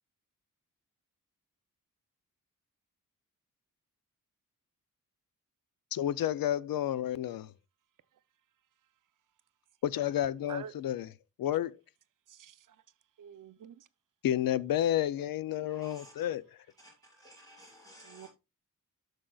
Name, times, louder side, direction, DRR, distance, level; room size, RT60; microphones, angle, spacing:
voice 1, 5.9-7.4 9.9-11.1 11.4-11.8 14.2-16.6, left 12 dB, 90° left, 0.5 m, -31 dB
voice 2, 12.3-12.8 13.2-13.9 18.0-18.3, right 9 dB, 65° right, 0.6 m, -47 dB
voice 3, 15.7-16.1 16.8-18.3, equal, 10° left, 5.6 m, -55 dB
12.5 x 6.4 x 2.3 m
wide cardioid pair, 175°, 34 cm